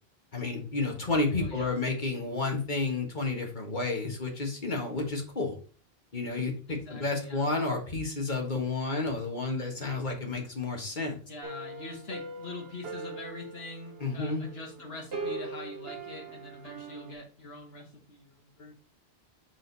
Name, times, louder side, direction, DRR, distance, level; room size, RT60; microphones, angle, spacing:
voice 1, 0.3-5.6 6.1-11.2 14.0-14.4, left 3 dB, 45° left, 2 dB, 1.7 m, -31 dB
voice 2, 1.4-1.8 6.7-7.6 11.3-18.7, left 2 dB, 70° left, 2 dB, 1.9 m, -44 dB
sound 1, 11.4-17.1, right 3 dB, 70° right, 1.2 m, -41 dB
6.3 x 5.0 x 4.0 m, 0.40 s
omnidirectional pair, 1.1 m